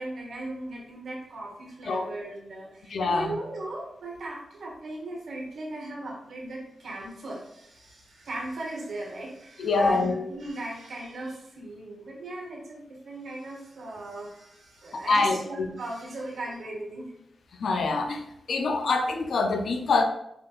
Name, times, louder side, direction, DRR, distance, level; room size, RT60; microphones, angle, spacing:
voice 1, 0.0-17.1, right 2 dB, 75° right, -2 dB, 1.0 m, -38 dB
voice 2, 2.9-3.3 9.6-10.3 14.9-15.7 17.6-18.2 18.5-20.0, left 3 dB, 75° left, 5 dB, 0.4 m, -25 dB
4.4 x 2.5 x 2.4 m, 0.80 s
cardioid pair, 50°, 0 cm